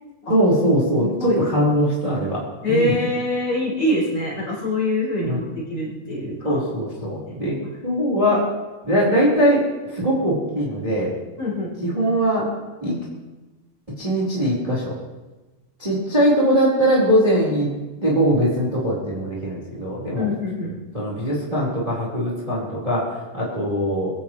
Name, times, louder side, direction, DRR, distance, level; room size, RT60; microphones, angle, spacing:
voice 1, 0.3-3.0 5.2-5.4 6.4-7.6 7.8-8.5 8.8-9.7 9.9-11.1 11.8-12.5 12.8-12.9 14.0-14.9 15.8-17.7 18.0-20.3 20.9-24.1, equal, 10° right, -5 dB, 3.8 m, -21 dB
voice 2, 0.9-1.4 2.6-6.6 7.3-7.4 11.4-11.7 20.2-20.7, left 1 dB, 30° left, -7 dB, 5.8 m, -24 dB
25.0 x 15.5 x 3.1 m, 1.2 s
omnidirectional pair, 4.2 m